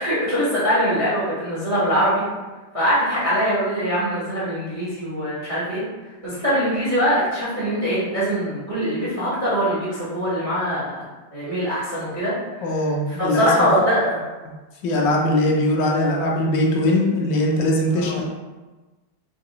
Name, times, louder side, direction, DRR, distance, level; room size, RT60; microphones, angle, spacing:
voice 1, 0.0-2.2 2.7-5.8 6.2-10.9 11.3-12.3 13.2-14.2 18.0-18.2, equal, 30° right, -9 dB, 0.6 m, -22 dB
voice 2, 12.6-13.7 14.8-18.2, left 1 dB, 75° left, -1 dB, 1.3 m, -21 dB
3.8 x 2.3 x 3.8 m, 1.2 s
omnidirectional pair, 2.0 m